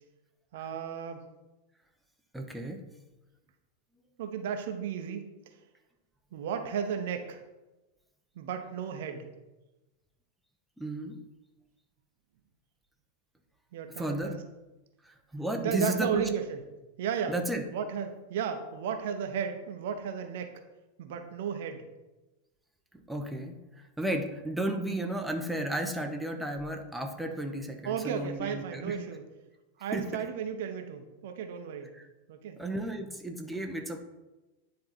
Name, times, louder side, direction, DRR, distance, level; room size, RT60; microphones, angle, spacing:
voice 1, 0.5-1.2 4.2-5.2 6.3-7.4 8.4-9.3 13.7-14.4 15.6-16.6 17.0-17.3 17.7-20.5 21.0-21.9 27.8-29.2 29.8-31.9 32.3-32.6 33.0-33.1, right 7 dB, 55° right, 6 dB, 0.8 m, -34 dB
voice 2, 2.3-2.8 10.8-11.2 14.0-14.3 15.0-16.2 17.3-17.6 23.1-29.0 29.9-30.2 31.9-32.1 32.6-34.0, right 1 dB, 5° right, 3 dB, 0.8 m, -33 dB
9.8 x 3.8 x 4.1 m, 1.1 s
figure-of-eight pair, 90°, 0 cm